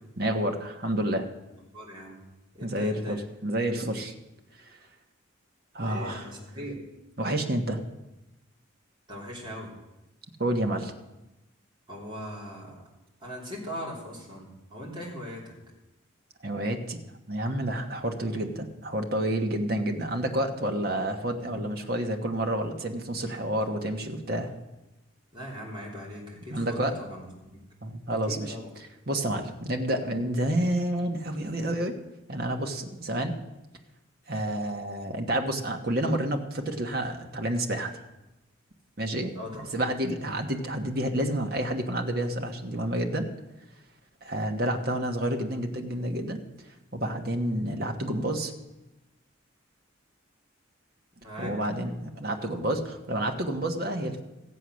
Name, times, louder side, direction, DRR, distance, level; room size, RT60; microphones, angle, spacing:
voice 1, 0.2-1.3 2.6-4.1 5.7-6.3 6.6-6.7 7.2-7.8 10.4-10.9 16.4-17.0 17.3-24.5 26.5-27.0 27.8-28.5 29.1-32.0 32.3-33.4 34.3-38.0 39.0-39.4 39.7-43.3 44.2-46.4 46.9-48.5 51.4-54.2, right 1 dB, 45° right, 4 dB, 1.3 m, -29 dB
voice 2, 1.7-2.2 2.5-3.2 5.8-6.8 9.1-9.7 11.9-12.8 13.2-15.5 25.3-27.6 28.1-28.7 39.3-39.7 51.2-51.5, equal, 20° right, -4 dB, 3.3 m, -40 dB
16.0 x 7.7 x 6.4 m, 1.0 s
head